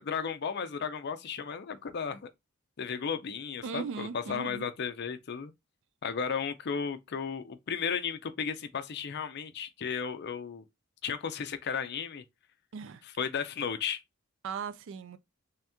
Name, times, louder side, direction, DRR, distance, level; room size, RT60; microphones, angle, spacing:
voice 1, 0.0-2.2 2.8-5.5 6.0-10.6 11.0-12.2 13.2-14.0, left 6 dB, 50° left, 0.5 m, -34 dB
voice 2, 3.6-4.6 12.7-13.0 14.4-15.2, right 6 dB, 60° right, 0.4 m, -38 dB
3.5 x 2.8 x 3.4 m
head